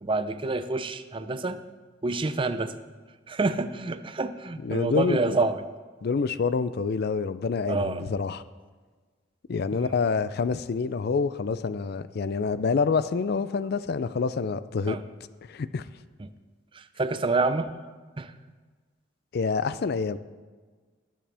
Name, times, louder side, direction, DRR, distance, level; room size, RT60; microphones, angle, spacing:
voice 1, 0.0-1.6 2.0-2.7 3.3-5.6 7.7-8.0 9.7-9.9 14.9-15.0 17.0-17.7 18.2-18.3, right 3 dB, 25° right, 10 dB, 0.5 m, -27 dB
voice 2, 4.6-5.4 6.0-8.4 9.5-15.0 15.5-15.9 19.3-20.2, left 5 dB, 50° left, 14 dB, 0.4 m, -27 dB
19.0 x 7.5 x 3.4 m, 1.4 s
head